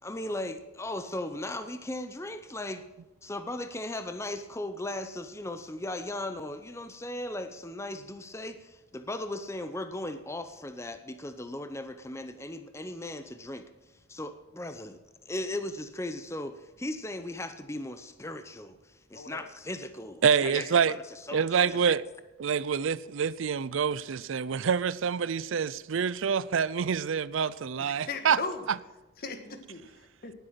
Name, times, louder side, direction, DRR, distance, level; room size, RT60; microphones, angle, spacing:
voice 1, 0.0-2.8 3.2-13.6 14.1-15.0 15.3-18.7 19.1-22.0, left 1 dB, 15° left, 0.7 m, -37 dB
voice 2, 20.2-21.0 21.3-22.0 22.4-28.4, right 6 dB, 75° right, 0.5 m, -26 dB
voice 3, 27.8-28.6 29.2-30.3, left 4 dB, 50° left, 1.5 m, -38 dB
18.5 x 8.1 x 5.7 m
head